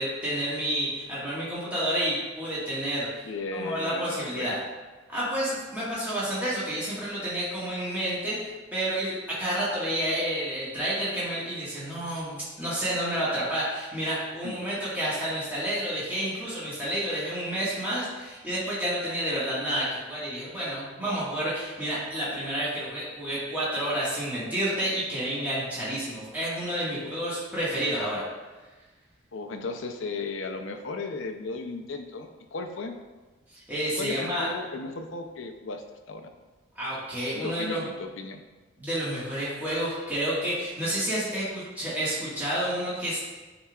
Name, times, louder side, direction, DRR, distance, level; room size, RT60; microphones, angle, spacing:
voice 1, 0.0-3.2 3.5-4.6 5.1-28.2 33.5-34.5 36.7-37.8 38.8-43.2, right 1 dB, 10° right, -10 dB, 1.6 m, -30 dB
voice 2, 3.2-4.5 14.4-14.6 27.0-27.1 29.3-33.0 34.0-36.3 37.3-38.4, left 3 dB, 65° left, 5 dB, 0.6 m, -35 dB
9.4 x 4.3 x 2.4 m, 1.3 s
head